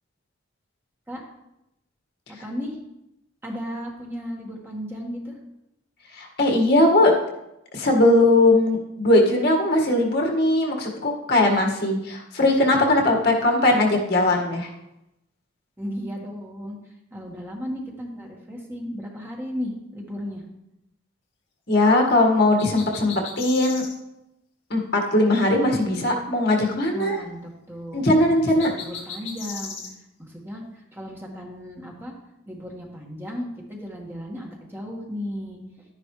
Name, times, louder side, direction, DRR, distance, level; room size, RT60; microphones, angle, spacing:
voice 1, 2.3-2.8 3.4-5.4 15.8-20.4 26.9-28.0 28.4-29.9 30.2-32.1 32.5-35.9, equal, 10° right, -2 dB, 1.8 m, -35 dB
voice 2, 6.1-7.1 7.7-14.7 21.7-23.8 24.7-27.2 27.9-28.7, left 1 dB, 55° left, 0 dB, 1.9 m, -19 dB
sound 1, 22.6-24.0 28.6-29.9, left 5 dB, 70° left, 2.0 m, -37 dB
12.0 x 10.5 x 3.3 m, 0.87 s
head